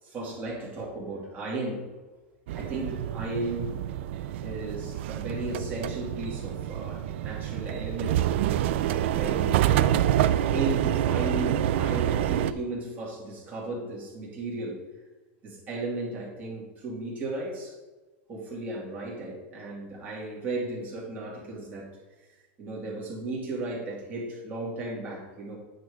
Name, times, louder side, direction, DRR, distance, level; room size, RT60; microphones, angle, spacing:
voice 1, 0.0-1.9 2.5-3.7 4.4-8.3 9.1-9.8 10.5-14.8 15.4-17.8 18.3-22.0 22.6-25.6, right 2 dB, 25° right, -4 dB, 2.5 m, -35 dB
sound 1, 2.5-12.5, right 11 dB, 60° right, 0.4 m, -27 dB
9.2 x 3.9 x 4.9 m, 1.2 s
supercardioid pair, 155°, 7 cm